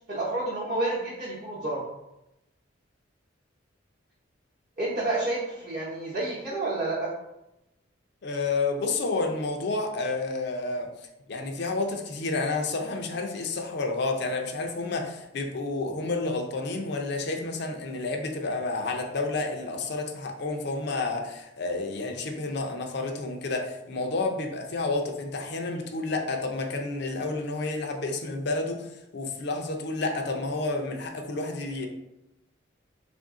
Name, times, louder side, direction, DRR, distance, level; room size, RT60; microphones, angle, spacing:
voice 1, 0.1-1.8 4.8-7.1, right 2 dB, 40° right, -8 dB, 0.8 m, -29 dB
voice 2, 8.2-10.9 11.3-31.9, left 3 dB, 60° left, 3 dB, 0.5 m, -30 dB
3.4 x 2.6 x 3.6 m, 0.92 s
head